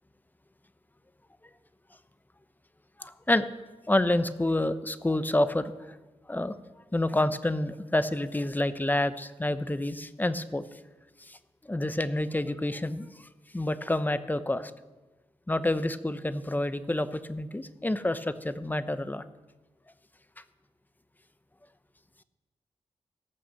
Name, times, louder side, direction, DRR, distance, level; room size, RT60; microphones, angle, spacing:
voice 1, 3.0-3.5 3.9-6.0 6.3-6.5 6.9-10.6 11.2-11.4 11.6-13.3 13.5-14.7 15.5-19.2, left 1 dB, 15° left, 12 dB, 0.8 m, -28 dB
17.5 x 6.1 x 7.6 m, 1.2 s
cardioid pair, 70°, 12 cm